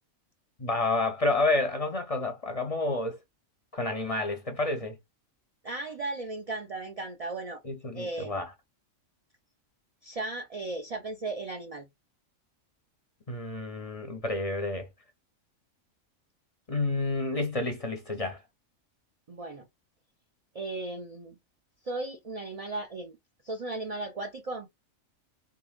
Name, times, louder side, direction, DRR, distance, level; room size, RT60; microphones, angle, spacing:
voice 1, 0.6-3.2 3.7-5.0 7.6-8.5 13.3-14.9 16.7-18.4, left 2 dB, 35° left, 0.6 m, -29 dB
voice 2, 5.6-7.6 7.9-8.4 10.0-11.9 19.3-19.7 20.5-21.4 21.8-23.2 23.4-24.7, right 2 dB, 45° right, 0.4 m, -36 dB
3.8 x 3.5 x 2.3 m
omnidirectional pair, 1.4 m